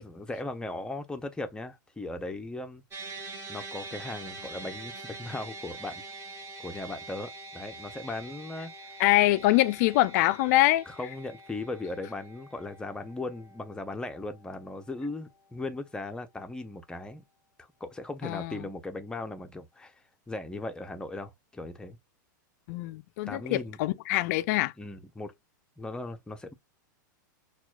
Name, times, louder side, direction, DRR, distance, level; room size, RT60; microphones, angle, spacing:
voice 1, 0.0-2.8 3.5-6.0 6.6-9.0 10.9-17.2 17.6-20.0 20.3-22.0 23.3-23.8 24.8-25.3 25.8-26.5, left 2 dB, 10° left, 0.6 m, -38 dB
sound 1, 2.9-15.3, right 3 dB, 25° right, 1.7 m, -45 dB
voice 2, 9.0-10.8 18.2-18.6 22.7-24.7, left 17 dB, 55° left, 0.4 m, -24 dB
5.9 x 2.4 x 2.3 m
hypercardioid pair, 125°, 11 cm